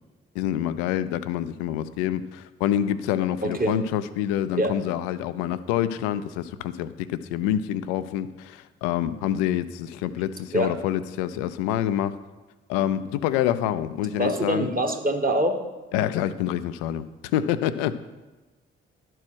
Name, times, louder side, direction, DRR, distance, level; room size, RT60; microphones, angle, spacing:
voice 1, 0.3-12.2 12.7-14.7 15.9-17.1 17.3-17.9, left 11 dB, 80° left, 14 dB, 0.5 m, -27 dB
voice 2, 3.4-3.8 4.5-4.7 10.5-10.7 14.1-15.6, right 1 dB, 30° right, 4 dB, 1.4 m, -24 dB
11.0 x 4.5 x 6.1 m, 1.2 s
hypercardioid pair, 40°, 31 cm